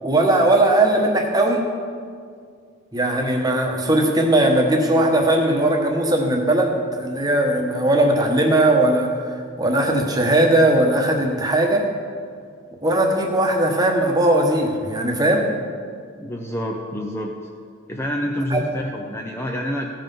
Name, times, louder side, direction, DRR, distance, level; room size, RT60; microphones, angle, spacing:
voice 1, 0.0-1.7 2.9-11.9 12.8-15.5 18.5-18.6, right 1 dB, 20° right, 2 dB, 1.1 m, -19 dB
voice 2, 16.2-17.3 17.9-19.9, equal, 10° left, 0 dB, 0.5 m, -27 dB
15.5 x 5.6 x 5.5 m, 2.1 s
head